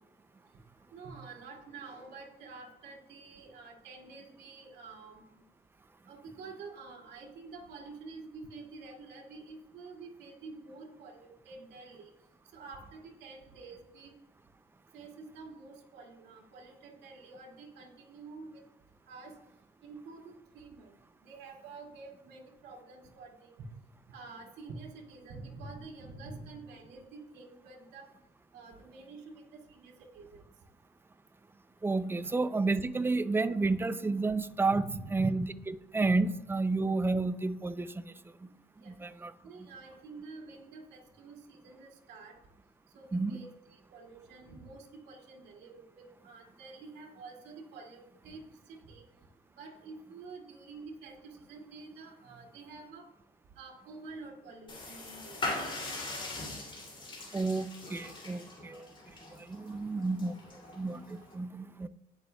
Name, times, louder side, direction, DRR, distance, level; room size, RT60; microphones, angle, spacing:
voice 1, 0.9-5.2 6.0-12.1 12.5-14.1 14.9-18.6 19.1-19.3 19.8-21.0 21.2-23.7 24.1-28.1 28.5-30.5 32.2-32.4 34.7-35.3 38.8-38.9 39.4-42.3 42.9-49.0 49.6-53.1 53.6-55.5, right 3 dB, 80° right, -1 dB, 2.4 m, -48 dB
voice 2, 31.8-37.9 38.4-38.5 38.9-39.3 39.6-39.7 43.1-43.4 57.3-58.9 59.5-61.9, right 3 dB, 15° right, 12 dB, 0.5 m, -31 dB
sound 1, 54.7-61.3, left 2 dB, 30° left, 2.9 m, -41 dB
18.0 x 7.0 x 2.3 m, 0.97 s
cardioid pair, 110°, 17 cm